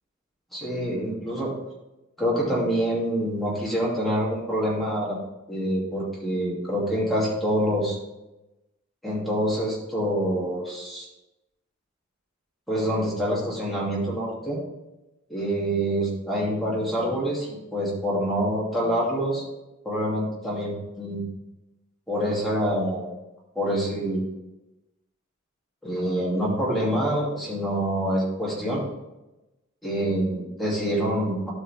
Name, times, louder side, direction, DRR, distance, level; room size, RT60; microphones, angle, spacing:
voice 1, 0.5-1.5 2.2-5.2 5.5-8.0 9.0-11.1 12.7-14.6 15.3-19.4 19.8-21.2 22.1-23.1 23.5-24.3 25.8-28.8 29.8-31.5, equal, ahead, -7 dB, 2.7 m, -26 dB
12.5 x 5.7 x 3.5 m, 0.99 s
head